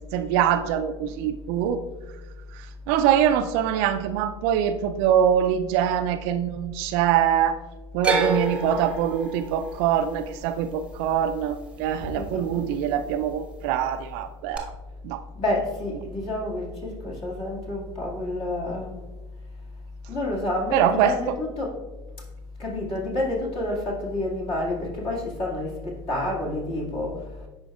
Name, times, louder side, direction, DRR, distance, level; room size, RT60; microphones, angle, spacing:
voice 1, 0.0-1.8 2.9-7.6 7.9-14.7 15.0-15.2 20.7-21.2, right 9 dB, 55° right, 9 dB, 0.4 m, -23 dB
sound 1, 8.0-12.2 12.5-13.2 14.5-14.6, right 2 dB, 5° right, 1.0 m, -30 dB
voice 2, 12.0-12.6 15.4-19.0 20.1-21.7 22.6-27.5, left 1 dB, 40° left, -2 dB, 2.0 m, -29 dB
10.5 x 4.4 x 2.3 m, 1.1 s
figure-of-eight pair, 75°, 16 cm